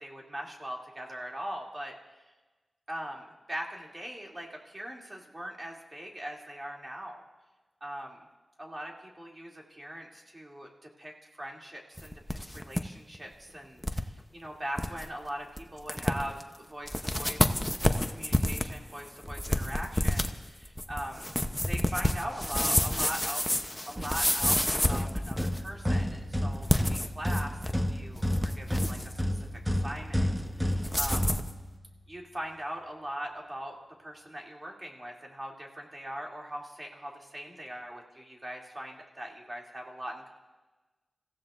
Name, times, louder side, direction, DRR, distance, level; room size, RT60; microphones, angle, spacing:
voice 1, 0.0-1.9 2.9-7.2 7.8-8.2 8.6-10.7 11.0-17.6 18.1-21.3 21.7-23.5 23.9-31.4 32.1-40.3, equal, 25° right, -1 dB, 2.8 m, -41 dB
sound 1, 12.0-12.8 13.1-13.2 13.8-14.0 14.5-14.6 14.8-15.1 15.6-15.7 15.9-16.4 16.9-25.7 26.5-27.8 28.2-29.1 30.8-31.5, left 1 dB, 10° left, 0.9 m, -29 dB
sound 2, 24.0-32.0, equal, 10° right, 1.3 m, -32 dB
29.5 x 15.5 x 2.6 m, 1.2 s
wide cardioid pair, 70°, 0 cm